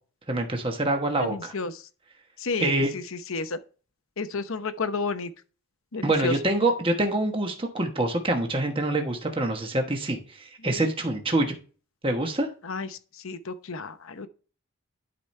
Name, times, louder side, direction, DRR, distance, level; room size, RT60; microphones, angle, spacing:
voice 1, 0.3-1.5 2.6-2.9 6.0-11.5 12.0-12.5, right 2 dB, 25° right, 1.2 m, -26 dB
voice 2, 1.2-1.8 2.4-3.6 4.2-5.3 5.9-6.3 10.6-10.8 12.6-12.9 13.2-14.3, left 4 dB, 65° left, 0.8 m, -31 dB
11.5 x 5.0 x 3.2 m
head